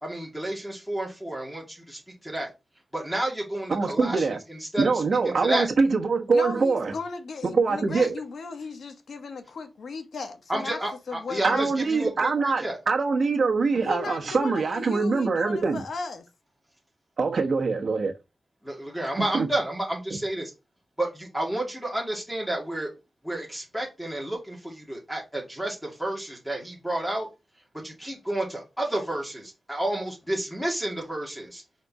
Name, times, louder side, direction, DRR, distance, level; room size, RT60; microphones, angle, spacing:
voice 1, 0.0-2.5 2.9-4.8 5.2-5.7 7.9-8.1 10.5-12.8 18.6-20.5 21.0-22.9 23.2-27.3 27.8-31.6, right 1 dB, 5° left, 2.3 m, -31 dB
voice 2, 3.7-4.4 4.8-6.9 7.4-8.1 11.4-15.8 17.2-18.1 19.2-19.5 20.1-20.2, right 4 dB, 65° right, 1.3 m, -24 dB
voice 3, 6.3-10.8 11.1-11.6 13.8-16.3, left 4 dB, 90° left, 1.1 m, -36 dB
5.3 x 4.3 x 4.7 m
wide cardioid pair, 115°, 0 cm